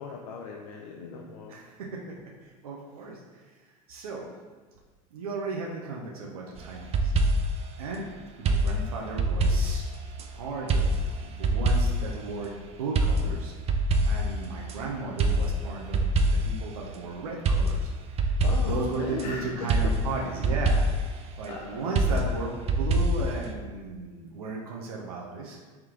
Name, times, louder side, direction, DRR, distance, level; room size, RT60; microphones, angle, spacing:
voice 1, 0.0-1.6 18.4-19.9 21.4-21.9, left 5 dB, 80° left, 0 dB, 0.5 m, -38 dB
voice 2, 1.5-2.2 2.6-3.4 3.9-4.3 5.1-7.1 7.8-8.1 8.4-9.9 10.3-13.5 14.0-20.8 21.1-25.6, right 3 dB, 85° right, -2 dB, 0.6 m, -35 dB
sound 1, 6.6-7.6 8.5-10.3 10.7-12.1 13.0-14.8 15.2-16.6 17.5-19.3 19.7-21.1 22.0-23.5, right 1 dB, 35° right, 0.4 m, -25 dB
3.5 x 3.0 x 3.6 m, 1.4 s
hypercardioid pair, 85°, 18 cm